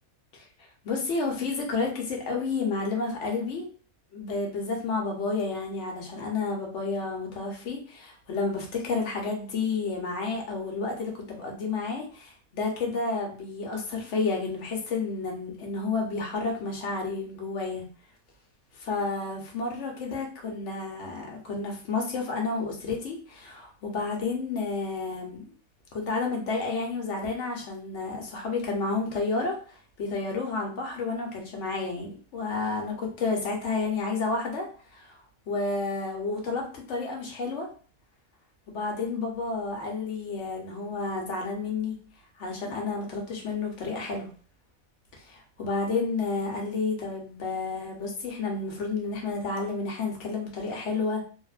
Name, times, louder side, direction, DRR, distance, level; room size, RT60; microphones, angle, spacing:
voice 1, 0.8-3.7 4.1-17.8 18.7-25.5 25.9-34.7 34.9-35.2 35.5-37.7 38.7-42.0 42.4-44.3 45.3-51.2, left 4 dB, 65° left, 0 dB, 0.9 m, -31 dB
2.9 x 2.0 x 2.3 m, 0.40 s
omnidirectional pair, 1.5 m